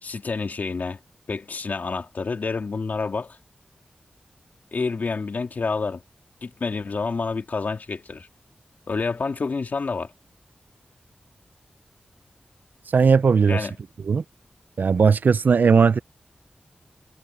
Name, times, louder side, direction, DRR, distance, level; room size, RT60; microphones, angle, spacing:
voice 1, 0.0-1.0 1.3-3.4 4.7-6.0 6.4-8.3 8.9-10.1 13.5-13.8, left 4 dB, 65° left, 2.7 m, -28 dB
voice 2, 12.9-13.7 14.0-14.2 14.8-16.0, right 5 dB, 70° right, 0.4 m, -17 dB
wide cardioid pair, 115°, 3 cm